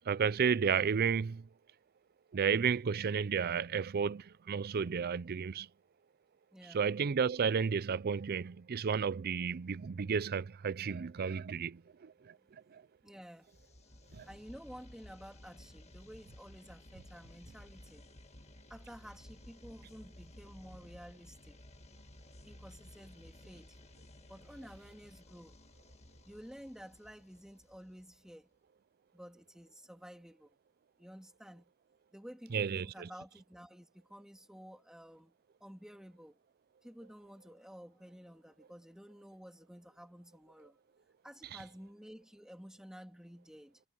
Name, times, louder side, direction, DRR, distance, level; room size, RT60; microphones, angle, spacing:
voice 1, 0.1-1.5 2.3-5.7 6.7-12.4 12.7-12.8 14.1-14.3 32.5-33.1, right 6 dB, 45° right, 0.4 m, -32 dB
voice 2, 6.5-6.9 12.4-12.6 13.0-13.5 14.3-18.1 18.7-21.6 22.4-23.8 24.3-25.6 26.3-28.5 29.1-30.5 31.0-31.7 32.1-35.3 35.6-36.4 36.8-40.8 41.2-43.8, equal, 5° right, 3.2 m, -52 dB
sound 1, 13.5-28.3, left 1 dB, 30° left, 1.8 m, -56 dB
head